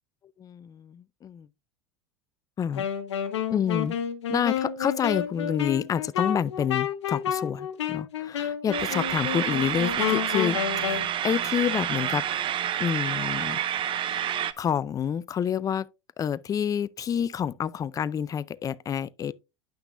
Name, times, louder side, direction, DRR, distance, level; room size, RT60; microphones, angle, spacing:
voice 1, 0.4-1.5 2.6-2.8 3.5-3.9 4.3-12.2 12.8-13.6 14.6-15.9 16.2-19.3, left 8 dB, 25° left, 0.4 m, -28 dB
Wind instrument woodwind instrument, 2.7-11.1, left 9 dB, 80° left, 1.1 m, -30 dB
sound 1, 8.7-14.5, right 10 dB, 35° right, 0.6 m, -29 dB
10.0 x 5.9 x 2.5 m
hypercardioid pair, 90°, 15 cm